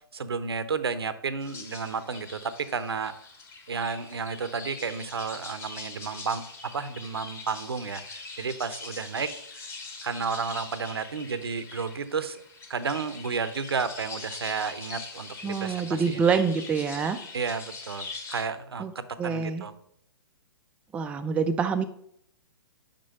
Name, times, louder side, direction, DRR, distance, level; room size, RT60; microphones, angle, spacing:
voice 1, 0.1-3.1 3.7-9.3 10.0-12.4 12.7-16.3 17.3-19.7, right 5 dB, 80° right, 13 dB, 0.7 m, -32 dB
sound 1, 1.4-18.4, left 4 dB, 20° left, 1.2 m, -43 dB
voice 2, 15.4-17.2 18.8-18.9 19.2-19.7 20.9-21.8, right 5 dB, 10° right, 7 dB, 0.3 m, -26 dB
5.5 x 5.2 x 5.3 m, 0.70 s
figure-of-eight pair, 120°, 13 cm